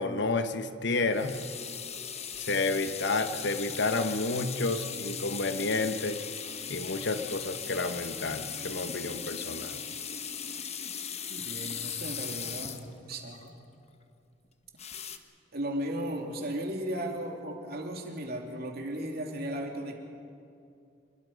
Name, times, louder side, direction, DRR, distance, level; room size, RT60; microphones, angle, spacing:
voice 1, 0.0-1.3 2.4-6.2 6.7-9.8, left 3 dB, 65° left, 9 dB, 1.2 m, -30 dB
sound 1, 1.1-13.5 14.8-15.2, left 7 dB, 35° left, 1.1 m, -38 dB
voice 2, 11.3-13.5 15.5-20.0, right 1 dB, 55° right, 2 dB, 2.8 m, -36 dB
27.5 x 21.5 x 5.3 m, 2.4 s
head